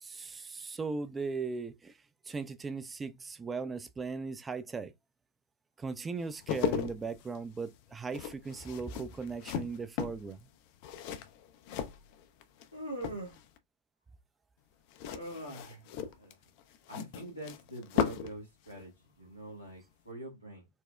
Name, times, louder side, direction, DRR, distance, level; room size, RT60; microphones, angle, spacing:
voice 1, 0.0-2.0 2.3-4.9 5.8-10.4, right 4 dB, 15° right, 0.4 m, -38 dB
sound 1, 6.2-12.7 12.9-13.6 14.9-18.4 18.7-18.8, left 8 dB, 45° left, 0.4 m, -37 dB
voice 2, 12.7-13.4 15.1-16.5 16.9-20.7, right 1 dB, 90° right, 0.9 m, -44 dB
4.3 x 2.0 x 2.2 m
figure-of-eight pair, 90°, 0 cm